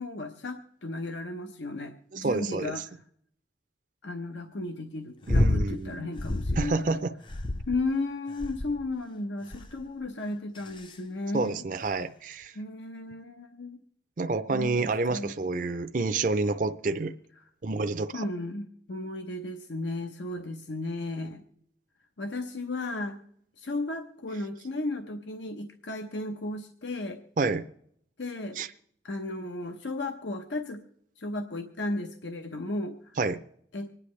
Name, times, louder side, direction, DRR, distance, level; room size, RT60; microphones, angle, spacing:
voice 1, 0.0-2.9 4.0-6.8 7.7-11.6 12.5-13.8 14.5-15.3 17.4-17.5 18.1-21.4 22.2-23.2 23.6-27.2 28.2-28.6 29.0-30.8 31.2-33.2 33.7-33.9, left 2 dB, 85° left, 0.8 m, -34 dB
voice 2, 2.1-2.8 5.3-6.1 6.6-7.1 11.3-12.5 14.2-17.1 17.6-18.3 27.4-27.6 28.6-28.7 33.2-33.4, right 3 dB, 45° right, 0.4 m, -28 dB
sound 1, 5.3-5.7 6.2-6.8 7.3-7.9 8.4-8.9 9.5-9.9 10.6-10.9 11.9-12.0, left 1 dB, 25° left, 0.5 m, -28 dB
25.5 x 9.9 x 3.2 m
head